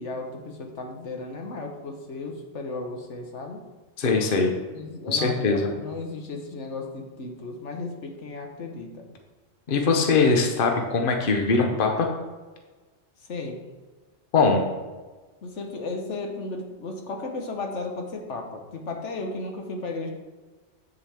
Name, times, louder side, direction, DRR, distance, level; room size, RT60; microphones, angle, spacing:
voice 1, 0.0-3.6 4.7-9.1 13.3-13.6 15.4-20.1, left 3 dB, 75° left, 3 dB, 1.4 m, -34 dB
voice 2, 4.0-4.5 5.1-5.7 9.7-12.1 14.3-14.7, left 4 dB, 50° left, 3 dB, 1.1 m, -21 dB
8.4 x 7.3 x 3.5 m, 1.3 s
omnidirectional pair, 1.2 m